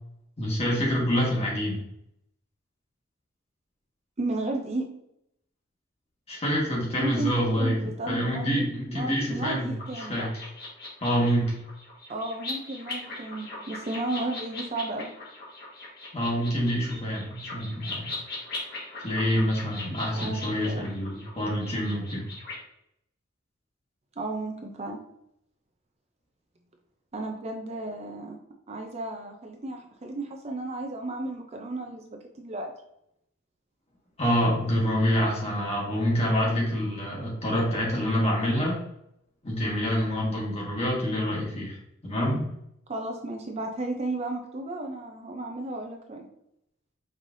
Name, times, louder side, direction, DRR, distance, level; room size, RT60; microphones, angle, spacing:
voice 1, 0.4-1.8 6.3-7.7 8.1-9.7 10.0-10.3 11.0-11.6 16.1-18.1 19.0-22.2 34.2-38.8 39.4-41.8 42.0-42.5, equal, 30° left, -4 dB, 1.5 m, -26 dB
voice 2, 4.2-4.9 7.0-10.3 12.1-15.1 19.9-20.4 20.6-20.9 24.2-25.0 27.1-28.4 28.7-32.7 42.9-46.3, right 2 dB, 30° right, 3 dB, 0.5 m, -33 dB
sound 1, 9.8-22.5, left 2 dB, 50° left, 1.6 m, -40 dB
5.4 x 3.2 x 2.6 m, 0.77 s
head